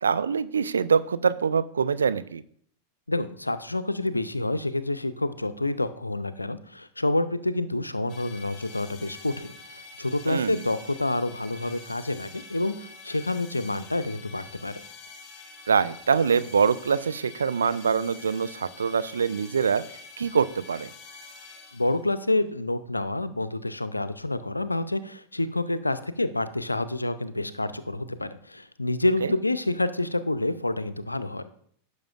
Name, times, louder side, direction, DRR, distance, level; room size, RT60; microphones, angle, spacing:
voice 1, 0.0-2.4 10.3-10.6 15.7-19.8 20.2-20.9 29.2-29.3, right 6 dB, 70° right, 13 dB, 0.4 m, -24 dB
voice 2, 3.1-14.8 21.7-31.4, left 2 dB, 85° left, 13 dB, 0.5 m, -28 dB
sound 1, 8.1-22.2, left 4 dB, 30° left, 1.6 m, -47 dB
15.0 x 6.4 x 2.5 m, 0.62 s
figure-of-eight pair, 90°, 0 cm